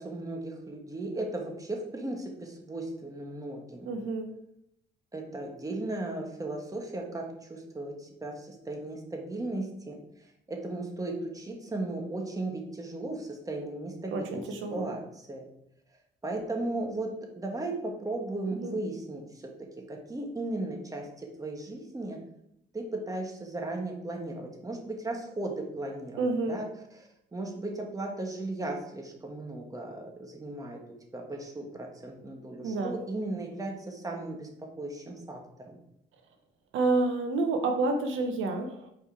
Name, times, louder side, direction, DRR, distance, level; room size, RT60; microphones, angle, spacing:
voice 1, 0.0-3.9 5.1-15.5 15.9-22.2 22.7-30.8 31.1-35.8, right 2 dB, 15° right, 2 dB, 1.3 m, -36 dB
voice 2, 3.9-4.3 14.1-14.9 18.6-18.7 26.2-26.6 32.6-32.9 36.7-38.9, right 3 dB, 80° right, 5 dB, 0.9 m, -29 dB
5.3 x 4.7 x 4.5 m, 0.78 s
cardioid pair, 90°, 20 cm